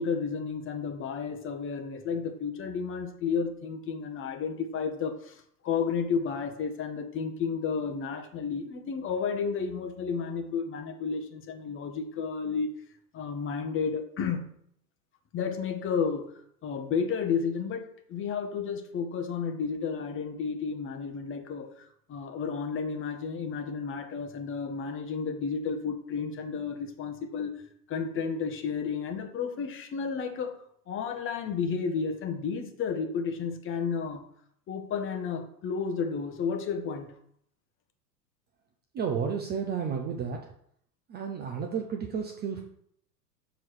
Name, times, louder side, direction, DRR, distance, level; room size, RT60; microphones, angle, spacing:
voice 1, 0.0-12.7 13.1-14.5 15.3-16.3 16.6-27.5 27.9-30.6 30.9-34.3 34.7-37.1, left 5 dB, 25° left, 6 dB, 0.8 m, -32 dB
voice 2, 38.9-40.4 41.1-42.6, right 6 dB, 20° right, 3 dB, 0.5 m, -32 dB
7.0 x 3.0 x 4.6 m, 0.68 s
hypercardioid pair, 90°, 49 cm